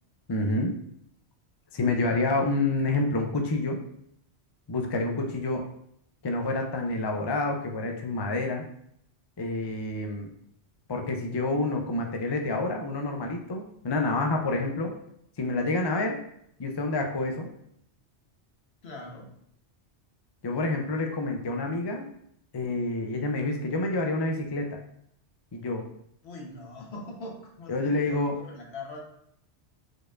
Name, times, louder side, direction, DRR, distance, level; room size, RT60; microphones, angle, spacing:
voice 1, 0.3-0.7 1.7-3.8 4.7-5.6 6.2-8.6 9.4-10.3 10.9-14.9 15.4-16.2 16.6-17.5 20.4-22.0 22.5-24.7 25.5-25.8 27.7-28.3, left 2 dB, 45° left, 3 dB, 0.3 m, -28 dB
voice 2, 18.8-19.3 26.2-29.0, left 2 dB, 65° left, -1 dB, 1.3 m, -42 dB
4.7 x 4.5 x 2.4 m, 0.72 s
omnidirectional pair, 1.2 m